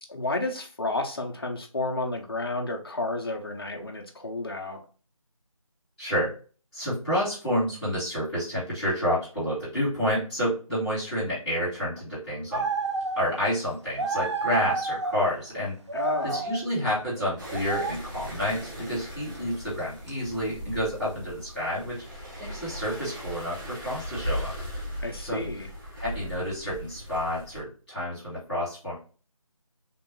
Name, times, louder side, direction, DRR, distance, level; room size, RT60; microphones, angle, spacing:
voice 1, 0.1-4.8 15.9-16.4 25.0-25.7, left 2 dB, 40° left, 2 dB, 0.7 m, -31 dB
voice 2, 6.0-6.3 6.7-12.6 13.2-15.7 16.2-24.5 25.2-25.7 25.9-29.0, equal, ahead, -14 dB, 1.9 m, -29 dB
sound 1, 12.5-13.3 13.6-13.7 14.0-15.3 15.9-16.6 17.2-18.0 19.4-19.5 20.1-20.2 20.6-20.7, right 4 dB, 55° right, 0.5 m, -30 dB
sound 2, 17.4-27.6, equal, 35° right, 1.1 m, -38 dB
3.4 x 3.1 x 2.9 m, 0.38 s
figure-of-eight pair, 165°, 18 cm